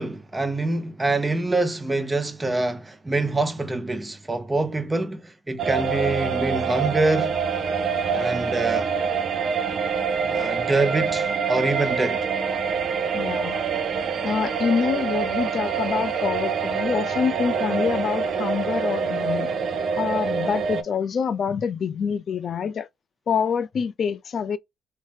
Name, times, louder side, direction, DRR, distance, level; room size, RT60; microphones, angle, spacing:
voice 1, 0.0-7.4 8.1-8.9 10.3-12.2, right 2 dB, 20° right, 0.7 m, -25 dB
sound 1, 5.6-20.8, right 6 dB, 60° right, 0.5 m, -25 dB
voice 2, 13.1-13.7 14.2-19.6 20.0-22.9 23.3-24.6, left 6 dB, 55° left, 0.4 m, -26 dB
3.2 x 2.0 x 3.0 m
cardioid pair, 90°, 0 cm